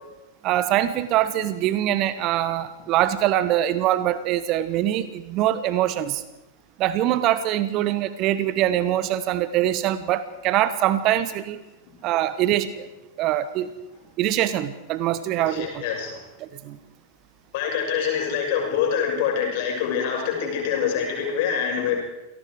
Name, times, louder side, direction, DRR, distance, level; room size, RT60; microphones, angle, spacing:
voice 1, 0.4-6.2 6.8-11.6 12.0-12.9 13.2-13.7 14.2-15.8 16.4-16.8, right 12 dB, 40° right, 15 dB, 1.4 m, -23 dB
voice 2, 15.4-16.3 17.5-21.9, left 7 dB, 50° left, 1 dB, 6.9 m, -25 dB
28.0 x 19.0 x 4.9 m, 0.98 s
figure-of-eight pair, 90°, 0 cm